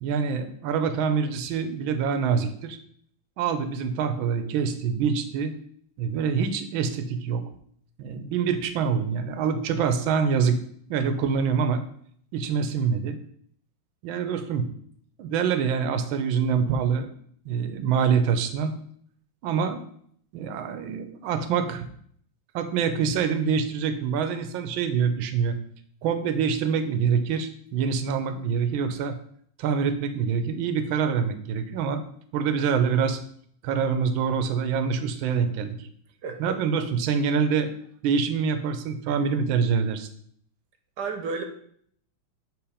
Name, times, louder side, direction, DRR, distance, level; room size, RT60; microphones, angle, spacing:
voice 1, 0.0-2.8 3.4-5.5 6.0-7.4 8.0-10.6 10.9-11.8 12.3-13.2 14.0-14.7 15.2-17.1 17.5-18.7 19.4-19.8 20.3-21.9 22.5-25.6 26.0-29.2 29.6-32.0 32.3-33.2 33.6-35.8 36.4-37.7 38.0-40.1, right 6 dB, 80° right, 9 dB, 1.5 m, -25 dB
voice 2, 36.2-36.6 41.0-41.4, right 4 dB, 65° right, 5 dB, 1.3 m, -32 dB
8.0 x 3.3 x 4.9 m, 0.63 s
omnidirectional pair, 2.2 m